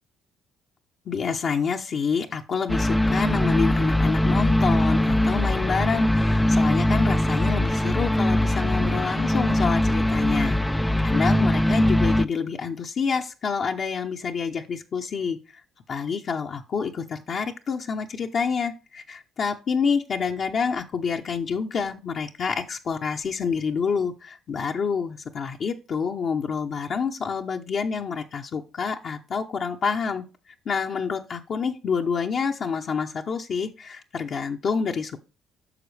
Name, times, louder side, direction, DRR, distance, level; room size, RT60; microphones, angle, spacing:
voice 1, 1.1-15.6 15.9-35.2, left 5 dB, 55° left, 2 dB, 0.8 m, -28 dB
sound 1, 2.7-12.2, left 1 dB, 5° left, 0.4 m, -21 dB
9.9 x 6.1 x 3.3 m, 0.31 s
supercardioid pair, 65°, 0 cm